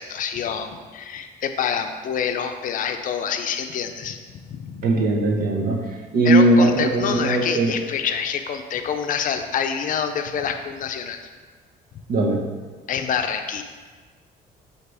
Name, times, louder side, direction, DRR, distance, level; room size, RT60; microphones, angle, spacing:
voice 1, 0.0-4.2 4.5-4.9 6.2-11.2 12.9-13.6, left 7 dB, 50° left, 7 dB, 0.6 m, -26 dB
voice 2, 4.8-5.8 6.1-7.7 12.1-12.4, right 2 dB, 60° right, 1 dB, 1.1 m, -19 dB
7.9 x 2.9 x 4.8 m, 1.5 s
cardioid pair, 110°, 17 cm